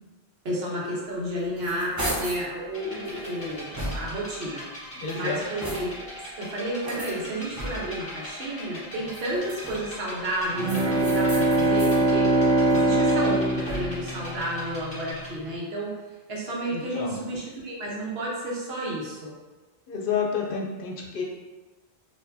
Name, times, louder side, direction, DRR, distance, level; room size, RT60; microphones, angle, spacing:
voice 1, 0.4-4.6 5.1-6.1 6.4-12.3 12.7-15.9 16.3-19.3, right 1 dB, 75° right, -4 dB, 1.2 m, -31 dB
sound 1, 1.1-2.5 3.0-4.3 4.9-6.1 6.8-8.1 9.0-10.0 10.6-12.0 12.5-14.1, equal, 20° right, 0.7 m, -36 dB
sound 2, 2.7-15.3, equal, 30° left, 1.4 m, -41 dB
voice 2, 4.9-5.4 16.7-17.2 19.9-21.2, left 6 dB, 65° left, 0 dB, 0.7 m, -29 dB
Bowed string instrument, 10.5-15.1, right 2 dB, 50° right, 0.7 m, -23 dB
4.5 x 2.6 x 2.6 m, 1.3 s
omnidirectional pair, 1.1 m